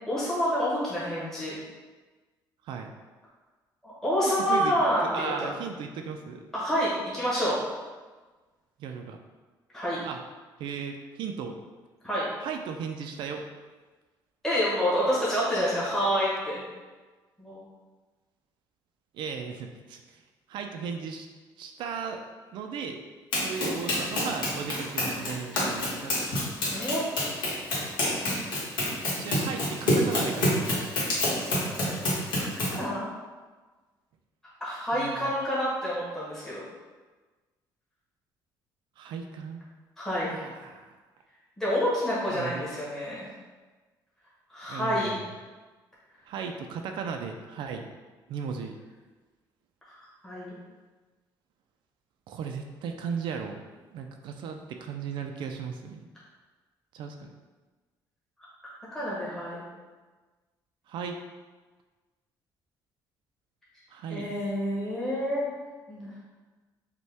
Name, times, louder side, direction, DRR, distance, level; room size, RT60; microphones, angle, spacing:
voice 1, 0.1-1.6 3.8-5.5 6.5-7.6 9.7-10.0 12.0-12.3 14.4-16.6 17.4-17.6 26.7-27.1 32.7-33.1 34.6-36.6 40.0-40.3 41.6-43.3 44.5-45.2 49.9-50.0 50.2-50.6 58.9-59.6 64.1-65.5 65.9-66.1, equal, 5° left, -9 dB, 1.1 m, -28 dB
voice 2, 4.2-4.7 5.0-6.4 8.8-9.2 10.0-10.2 10.6-11.6 12.4-13.5 19.1-20.2 20.5-21.3 21.6-22.2 22.5-23.0 23.4-26.2 29.2-30.9 34.9-35.3 39.0-39.6 40.3-40.9 42.3-42.7 44.7-45.3 46.3-47.9 48.3-48.7 52.3-53.6 53.9-56.1 56.9-57.3 60.9-61.2 63.9-64.3, right 6 dB, 70° right, 4 dB, 0.4 m, -36 dB
Run, 23.3-32.8, left 1 dB, 65° left, 1.3 m, -28 dB
5.3 x 2.2 x 3.4 m, 1.3 s
cardioid pair, 150°, 8 cm